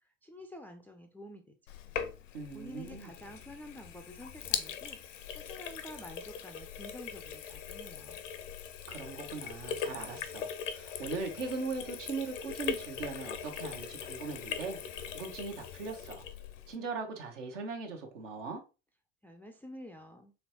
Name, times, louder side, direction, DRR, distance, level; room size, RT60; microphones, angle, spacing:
voice 1, 0.2-1.5 2.5-8.2 19.2-20.3, left 1 dB, 5° left, 0.3 m, -49 dB
Sink (filling or washing), 1.7-16.8, left 8 dB, 70° left, 0.6 m, -40 dB
voice 2, 2.3-3.1 8.9-16.2 16.7-18.6, right 4 dB, 70° right, 1.0 m, -40 dB
4.2 x 3.3 x 2.9 m
figure-of-eight pair, 60°, 38 cm